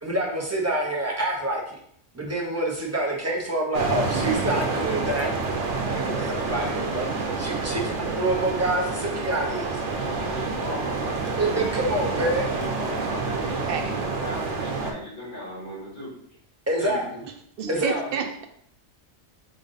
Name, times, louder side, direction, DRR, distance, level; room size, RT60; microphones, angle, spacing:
voice 1, 0.0-1.7 2.1-5.3 5.9-9.8 11.4-12.5 16.7-17.2 17.7-18.0, right 1 dB, 15° right, -1 dB, 0.8 m, -27 dB
sound 1, 3.7-14.9, right 4 dB, 85° right, 1.0 m, -28 dB
voice 2, 10.0-11.6 12.4-16.4 16.8-17.0 17.6-18.2, equal, 65° left, -7 dB, 2.4 m, -37 dB
voice 3, 17.6-18.5, right 6 dB, 60° right, 6 dB, 0.7 m, -30 dB
5.0 x 2.5 x 3.9 m, 0.66 s
omnidirectional pair, 1.2 m